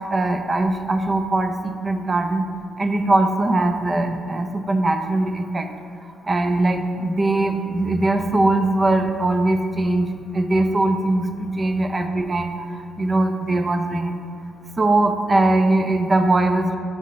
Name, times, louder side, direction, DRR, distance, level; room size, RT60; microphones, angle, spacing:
voice 1, 0.1-2.4 2.8-5.7 6.3-10.1 10.3-12.7 13.0-14.2 14.8-16.8, right 2 dB, 30° right, 6 dB, 0.5 m, -21 dB
10.0 x 3.6 x 3.8 m, 2.3 s
cardioid pair, 90°, 0 cm